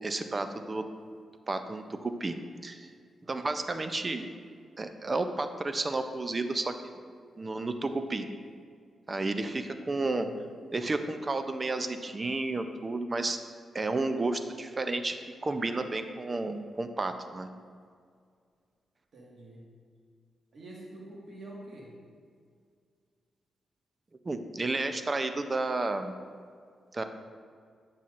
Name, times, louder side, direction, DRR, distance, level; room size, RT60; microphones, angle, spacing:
voice 1, 0.0-0.8 1.5-2.3 2.6-2.9 3.3-4.3 4.8-7.0 7.4-8.3 9.1-10.3 10.7-13.4 13.7-15.2 15.4-17.5 24.3-26.1 26.9-27.0, right 2 dB, 30° right, 8 dB, 0.4 m, -32 dB
voice 2, 10.0-10.4 19.1-19.7 20.5-22.0, right 1 dB, 60° right, -4 dB, 1.6 m, -47 dB
9.2 x 5.6 x 2.5 m, 2.1 s
cardioid pair, 90°, 0 cm